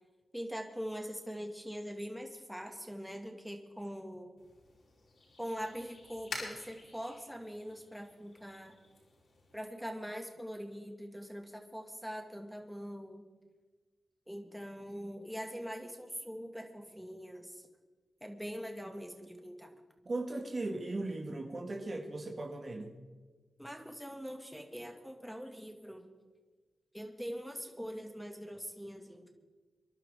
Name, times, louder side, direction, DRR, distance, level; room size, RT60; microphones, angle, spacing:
voice 1, 0.3-4.3 5.4-8.7 9.5-13.2 14.3-17.7 18.2-19.7 23.6-26.1 26.9-29.3, equal, ahead, 3 dB, 2.1 m, -43 dB
sound 1, 4.4-9.6, left 3 dB, 75° left, 6.2 m, -49 dB
voice 2, 20.0-23.0, right 2 dB, 45° right, 2 dB, 1.7 m, -38 dB
25.0 x 11.5 x 3.7 m, 1.4 s
cardioid pair, 65°, 0 cm